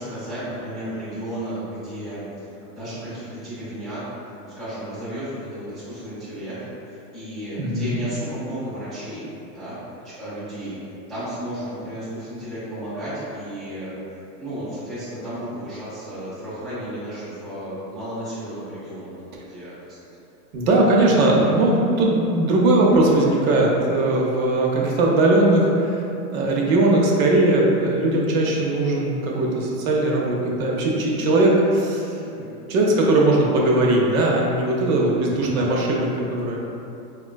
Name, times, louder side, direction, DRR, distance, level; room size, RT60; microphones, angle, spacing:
voice 1, 0.0-4.1 4.4-6.6 6.9-9.2 9.5-9.8 10.0-10.8 11.1-14.0 14.4-19.2 19.5-19.8 20.9-21.5 32.2-32.5 35.1-35.7, right 1 dB, ahead, -14 dB, 0.5 m, -33 dB
voice 2, 7.6-8.0 20.5-26.0 26.3-32.2 32.7-36.6, right 2 dB, 65° right, -3 dB, 0.6 m, -19 dB
3.6 x 2.3 x 2.2 m, 2.7 s
hypercardioid pair, 135°, 46 cm